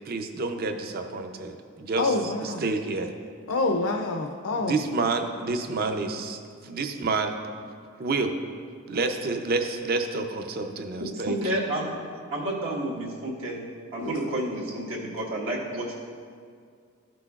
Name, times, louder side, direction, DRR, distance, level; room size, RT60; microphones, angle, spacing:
voice 1, 0.1-3.1 4.5-6.4 6.6-7.4 8.0-8.3 8.9-11.4, right 3 dB, 50° right, 6 dB, 0.6 m, -29 dB
voice 2, 2.0-2.6 3.5-4.8 14.0-14.1, left 3 dB, 70° left, 3 dB, 0.5 m, -26 dB
voice 3, 11.1-11.9 12.3-13.6 13.9-16.0, right 1 dB, 80° right, -4 dB, 1.5 m, -30 dB
13.5 x 6.0 x 2.4 m, 2.2 s
head